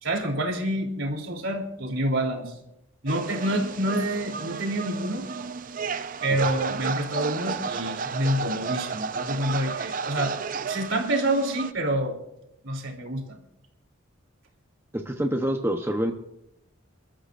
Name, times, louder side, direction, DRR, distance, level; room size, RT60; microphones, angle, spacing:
voice 1, 0.0-2.5 3.0-5.3 6.2-10.3 10.7-12.2 12.6-13.4, right 1 dB, 75° right, 2 dB, 3.3 m, -27 dB
sound 1, 3.1-11.7, right 5 dB, 45° right, 0.5 m, -32 dB
voice 2, 14.9-16.1, equal, 10° right, 4 dB, 0.9 m, -27 dB
29.0 x 13.5 x 2.6 m, 0.83 s
head